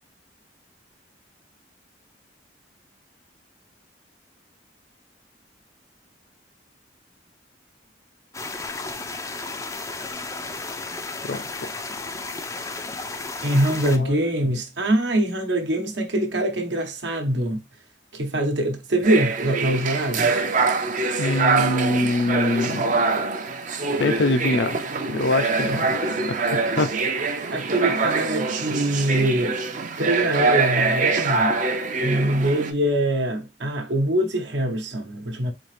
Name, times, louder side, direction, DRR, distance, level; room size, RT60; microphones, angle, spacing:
sound 1, 8.3-14.0, left 3 dB, 15° left, 0.4 m, -33 dB
voice 1, 11.2-11.7 13.9-14.2 21.2-23.1 24.0-24.8 25.1-26.0 26.8-26.9, left 2 dB, 65° left, 0.5 m, -24 dB
voice 2, 13.4-17.6 18.1-20.4 25.7-25.8 27.5-29.6 30.0-31.5 32.0-35.5, right 1 dB, 75° right, 1.0 m, -23 dB
sound 2, 19.0-32.7, right 4 dB, 45° right, 0.6 m, -24 dB
4.2 x 2.8 x 3.2 m
head